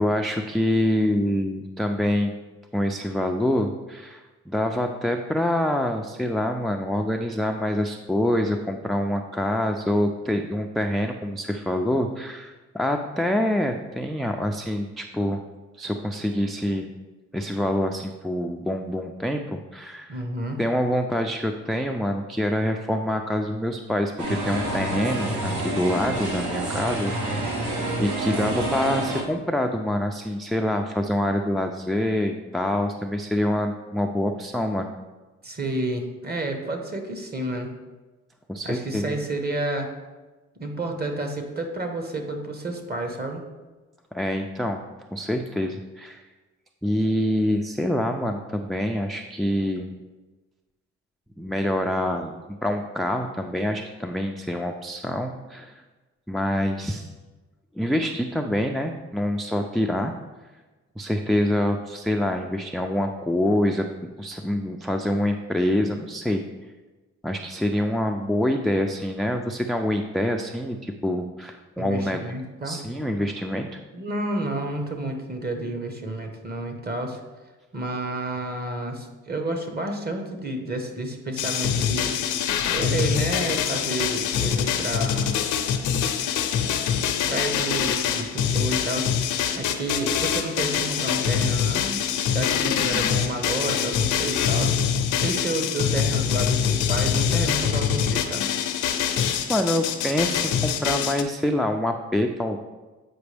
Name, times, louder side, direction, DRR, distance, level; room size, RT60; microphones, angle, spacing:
voice 1, 0.0-2.4 2.7-15.4 15.8-16.9 17.3-20.2 20.6-27.6 28.0-34.9 38.5-39.2 44.1-44.8 45.1-46.2 46.8-49.9 51.4-52.4 52.6-55.8 56.3-57.1 57.8-60.1 61.0-66.4 67.2-72.2 72.6-73.8 99.5-102.6, left 1 dB, ahead, 4 dB, 0.3 m, -26 dB
voice 2, 20.1-20.6 35.4-37.7 38.6-39.9 40.6-43.4 71.8-72.8 73.9-77.2 77.7-82.2 82.7-85.3 87.3-89.1 89.6-94.7 95.2-98.5, right 1 dB, 30° right, 4 dB, 1.2 m, -30 dB
sound 1, 24.2-29.2, right 1 dB, 75° right, 1.3 m, -28 dB
sound 2, 81.4-101.2, left 8 dB, 85° left, 0.6 m, -24 dB
8.0 x 5.1 x 3.4 m, 1.2 s
cardioid pair, 90°, 30 cm